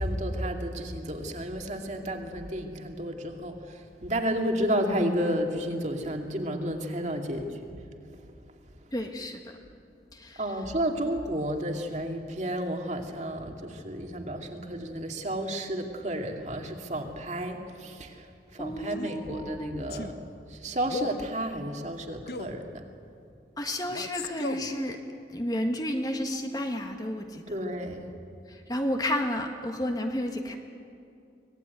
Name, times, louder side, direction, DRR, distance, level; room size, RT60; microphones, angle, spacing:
voice 1, 0.0-7.6 10.4-18.3 18.5-20.2 20.5-22.8 27.5-28.1, equal, 40° right, 3 dB, 2.3 m, -31 dB
voice 2, 8.9-9.6 10.1-10.4 18.6-19.9 23.6-25.0 25.3-27.4 28.5-30.6, left 1 dB, 20° left, 4 dB, 1.6 m, -31 dB
Male speech man speaking, 18.8-19.2 19.9-20.2 20.8-21.3 22.3-22.6 23.9-24.7, left 3 dB, 60° left, 1.2 m, -37 dB
25.0 x 19.0 x 9.4 m, 2.5 s
head